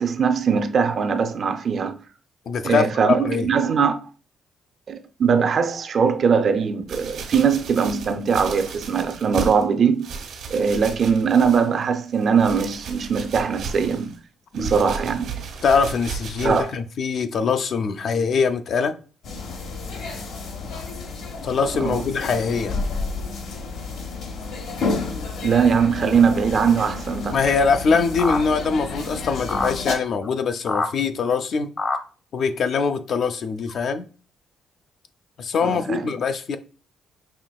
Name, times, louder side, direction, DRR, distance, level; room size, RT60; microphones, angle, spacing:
voice 1, 0.0-2.0 2.6-4.0 4.9-10.1 10.5-14.1 14.5-15.3 16.4-16.8 21.8-22.0 25.4-27.5 35.6-36.1, right 6 dB, 55° right, 0.4 m, -21 dB
voice 2, 2.5-3.5 14.6-14.7 15.6-19.0 21.4-22.7 27.3-31.7 32.3-34.1 35.4-36.6, left 5 dB, 60° left, 0.4 m, -23 dB
sound 1, 6.9-9.6 10.0-11.8 12.1-14.2 14.5-16.7 17.3-17.4, right 5 dB, 80° right, 1.0 m, -34 dB
sound 2, 19.2-29.9, left 3 dB, 80° left, 0.8 m, -31 dB
sound 3, 28.2-28.4 29.5-29.7 30.2-30.3 30.7-30.9 31.2-31.3 31.8-32.0 33.1-33.2 33.7-33.8, left 3 dB, 35° left, 0.8 m, -25 dB
5.6 x 2.9 x 2.3 m
cardioid pair, 90°, 0 cm